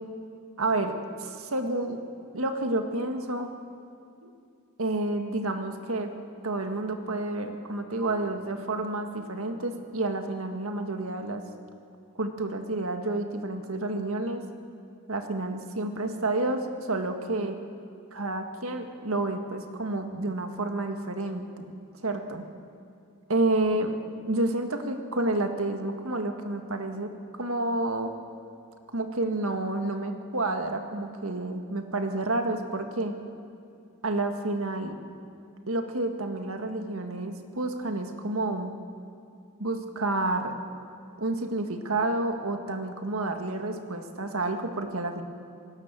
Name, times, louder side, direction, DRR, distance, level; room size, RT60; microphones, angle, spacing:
voice 1, 0.6-2.0 2.3-3.5 4.2-4.3 4.8-6.1 6.4-11.4 12.2-14.4 15.1-17.6 18.1-21.7 22.0-22.4 23.3-24.0 24.3-27.1 27.4-28.1 28.9-33.1 34.0-35.0 35.7-38.7 39.6-40.5 41.2-45.2, right 2 dB, 65° right, 6 dB, 1.9 m, -29 dB
27.5 x 18.5 x 7.6 m, 2.5 s
head